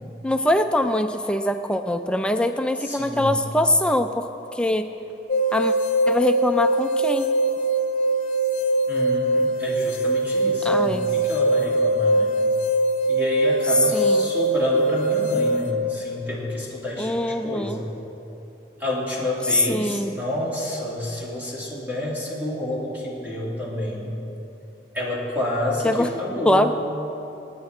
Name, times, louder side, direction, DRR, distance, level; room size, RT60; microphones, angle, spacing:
voice 1, 0.2-4.9 5.5-5.7 6.1-7.3 10.6-11.1 13.9-14.3 17.0-17.8 19.5-20.2 25.8-26.1 26.4-26.7, left 1 dB, 5° left, 7 dB, 0.4 m, -23 dB
voice 2, 2.8-3.4 8.9-12.3 13.1-17.9 18.8-24.1 24.9-26.7, left 1 dB, 10° right, -7 dB, 2.6 m, -29 dB
sound 1, 5.3-15.7, right 1 dB, 45° left, 0.9 m, -22 dB
25.5 x 9.8 x 3.6 m, 3.0 s
head